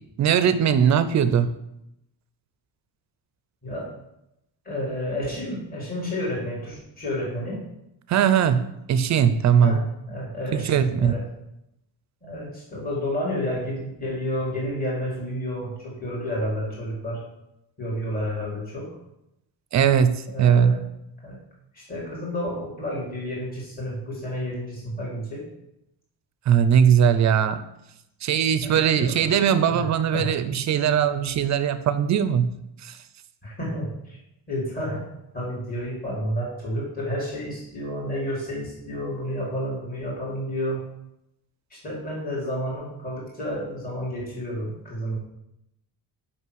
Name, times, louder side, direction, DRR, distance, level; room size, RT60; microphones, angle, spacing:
voice 1, 0.2-1.5 8.1-8.6 8.9-9.8 10.5-11.2 19.7-20.8 26.5-27.6 28.2-32.5 32.8-33.0, right 8 dB, 40° right, 12 dB, 0.4 m, -20 dB
voice 2, 4.7-7.6 9.6-11.2 12.2-17.2 17.8-18.9 20.3-20.9 21.2-21.4 21.7-25.4 28.6-29.3 29.7-29.9 30.1-30.3 33.4-34.2 34.5-35.0 35.3-40.8 41.7-45.2, equal, 20° left, -5 dB, 2.1 m, -30 dB
5.6 x 5.5 x 6.2 m, 0.84 s
cardioid pair, 180°, 44 cm